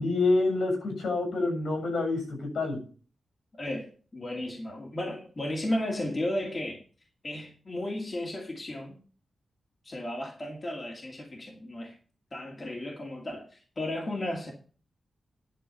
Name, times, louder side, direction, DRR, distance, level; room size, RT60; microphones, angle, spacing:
voice 1, 0.0-2.9, left 3 dB, 65° left, 7.7 m, -27 dB
voice 2, 3.6-6.8 7.2-9.0 9.8-12.0 12.3-14.5, left 1 dB, 25° left, 2.2 m, -34 dB
11.5 x 7.1 x 5.7 m
wide cardioid pair, 145°, 0 cm